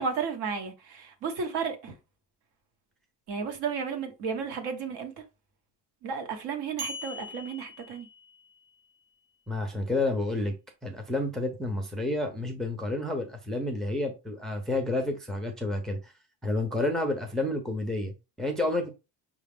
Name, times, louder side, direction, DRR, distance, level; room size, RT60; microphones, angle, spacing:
voice 1, 0.0-1.9 3.3-5.1 6.0-8.1, right 5 dB, 70° right, 1.2 m, -33 dB
sound 1, 6.8-8.6, equal, 25° right, 0.9 m, -40 dB
voice 2, 9.5-10.5 10.8-16.1 16.4-18.9, left 2 dB, ahead, 0.4 m, -30 dB
5.6 x 2.3 x 3.4 m
cardioid pair, 165°, 40 cm